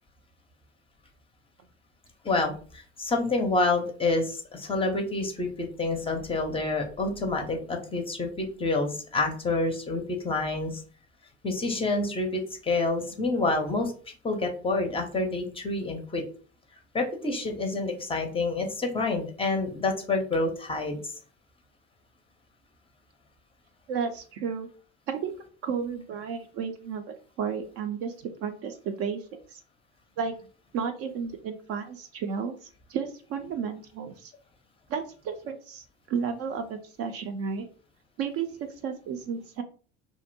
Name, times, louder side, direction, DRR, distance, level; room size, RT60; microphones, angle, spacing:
voice 1, 2.2-10.8 11.4-13.9 14.2-16.2 16.9-21.0, left 3 dB, 15° left, 4 dB, 0.5 m, -28 dB
voice 2, 23.9-24.7 25.1-25.3 25.6-28.1 28.4-29.2 29.5-29.6 30.2-30.3 30.7-34.3 34.9-37.7 38.2-39.6, right 6 dB, 45° right, 7 dB, 0.4 m, -33 dB
2.6 x 2.0 x 2.6 m, 0.40 s
figure-of-eight pair, 65°, 33 cm